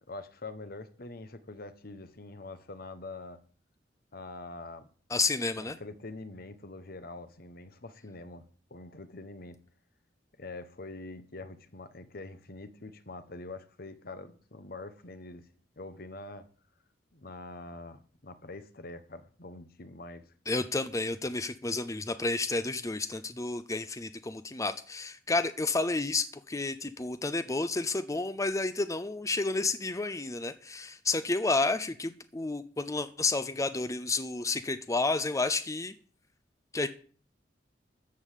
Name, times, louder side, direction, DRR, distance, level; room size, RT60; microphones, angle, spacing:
voice 1, 0.1-3.4 4.1-4.9 5.6-8.4 8.7-9.6 10.4-15.5 15.8-16.5 17.1-20.3, left 2 dB, 55° left, 1.1 m, -44 dB
voice 2, 5.1-5.8 20.5-35.9 36.7-36.9, left 3 dB, 20° left, 0.6 m, -31 dB
13.5 x 5.5 x 8.3 m
head